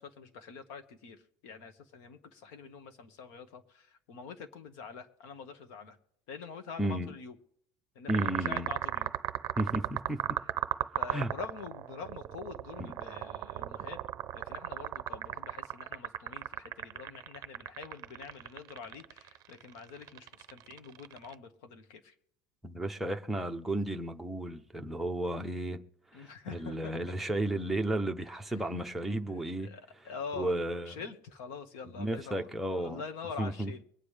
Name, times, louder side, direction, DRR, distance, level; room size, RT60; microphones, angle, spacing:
voice 1, 0.0-6.0 6.3-7.3 7.9-9.1 10.9-14.0 14.3-22.1 26.1-26.9 28.5-28.6 29.6-30.6 30.9-32.5 32.7-33.8, left 5 dB, 70° left, 1.6 m, -45 dB
voice 2, 8.1-8.7 9.6-10.2 11.1-11.3 12.8-12.9 22.6-25.8 26.1-29.7 30.4-31.0 31.9-33.0 33.4-33.7, right 1 dB, ahead, 0.7 m, -33 dB
sound 1, 8.1-21.3, right 13 dB, 40° right, 0.6 m, -36 dB
23.5 x 9.2 x 3.4 m
cardioid pair, 155°, 10 cm